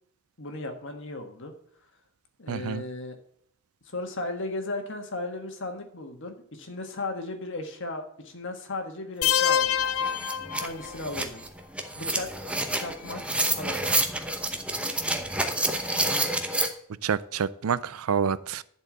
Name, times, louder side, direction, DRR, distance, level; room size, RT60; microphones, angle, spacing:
voice 1, 0.4-1.5 2.4-3.2 3.8-10.1 10.6-11.4 11.9-12.5 12.8-14.0, left 2 dB, 60° left, 5 dB, 1.6 m, -36 dB
voice 2, 2.5-2.8 17.0-18.6, right 7 dB, 80° right, 17 dB, 0.5 m, -27 dB
sound 1, 9.2-11.2, left 9 dB, 80° left, 0.5 m, -26 dB
sound 2, 9.4-9.5 9.8-16.7, right 1 dB, 5° right, 0.8 m, -29 dB
11.0 x 4.5 x 7.6 m, 0.65 s
head